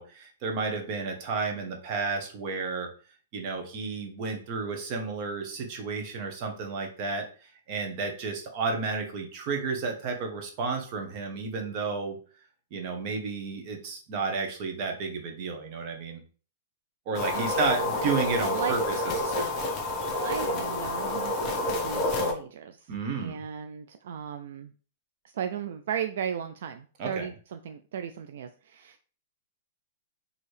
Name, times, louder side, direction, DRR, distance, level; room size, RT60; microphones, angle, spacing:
voice 1, 0.0-2.9 3.3-12.2 12.7-16.2 17.1-19.6 22.9-23.4 27.0-27.3, right 4 dB, 40° right, 4 dB, 1.0 m, -32 dB
sound 1, 17.1-22.3, left 2 dB, 20° left, 0.8 m, -29 dB
voice 2, 20.2-21.5 21.8-22.9 23.2-24.7 25.3-29.0, right 8 dB, 70° right, 8 dB, 0.3 m, -35 dB
4.5 x 2.9 x 3.3 m, 0.40 s
hypercardioid pair, 160°, 0 cm